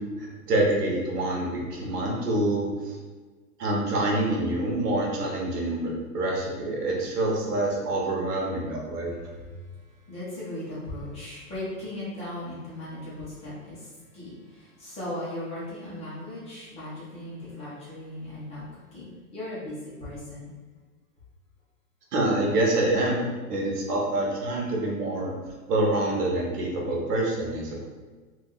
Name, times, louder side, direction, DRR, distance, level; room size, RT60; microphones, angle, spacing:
voice 1, 0.0-3.0 3.6-9.1 22.1-25.3 25.7-27.8, right 1 dB, 85° right, -2 dB, 1.3 m, -26 dB
voice 2, 10.1-18.6 18.9-20.5, left 1 dB, 15° left, -10 dB, 0.9 m, -37 dB
2.8 x 2.7 x 3.8 m, 1.4 s
hypercardioid pair, 155°, 46 cm